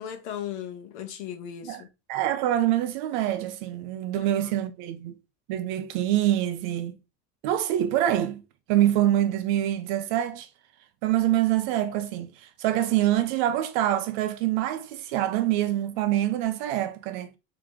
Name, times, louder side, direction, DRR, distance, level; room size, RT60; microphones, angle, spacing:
voice 1, 0.0-1.9 4.2-4.5, left 10 dB, 65° left, 1.1 m, -37 dB
voice 2, 2.1-5.2 5.5-7.0 7.4-8.4 8.7-10.5 11.0-17.4, right 13 dB, 40° right, 0.4 m, -25 dB
5.0 x 2.9 x 3.5 m
cardioid pair, 180°, 36 cm